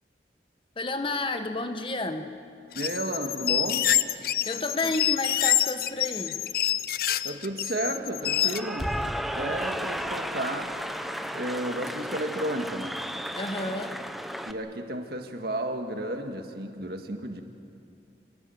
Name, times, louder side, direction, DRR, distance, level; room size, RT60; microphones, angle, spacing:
voice 1, 0.8-2.3 4.4-6.4 13.3-14.0, left 2 dB, 30° left, 7 dB, 1.2 m, -31 dB
sound 1, 2.7-8.6, left 12 dB, 55° left, 0.6 m, -26 dB
voice 2, 2.8-3.9 4.8-4.9 7.2-8.9 9.3-10.8 11.3-13.0 14.5-17.4, right 1 dB, 60° right, 5 dB, 1.8 m, -32 dB
Cheering / Applause, 8.2-14.5, equal, ahead, 0.7 m, -33 dB
27.5 x 19.0 x 7.9 m, 2.4 s
head